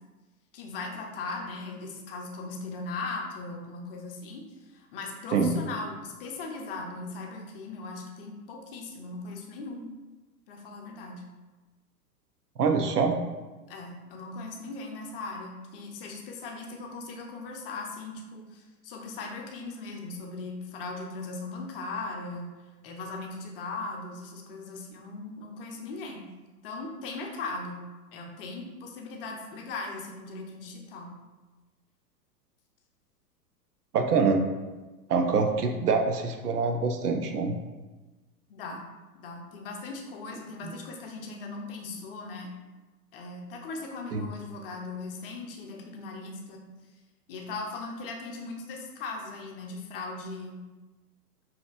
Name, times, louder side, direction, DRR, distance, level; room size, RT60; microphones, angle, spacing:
voice 1, 0.5-9.9 10.5-11.2 13.7-22.5 22.8-26.2 26.6-27.8 28.1-31.1 38.5-38.9 39.1-42.5 43.1-46.6 47.3-50.5, left 3 dB, 35° left, 1 dB, 0.7 m, -38 dB
voice 2, 12.6-13.2 33.9-34.4 35.1-37.6 40.6-40.7 44.1-44.2, right 4 dB, 75° right, 4 dB, 0.6 m, -25 dB
5.0 x 2.9 x 2.4 m, 1.2 s
figure-of-eight pair, 100°, 47 cm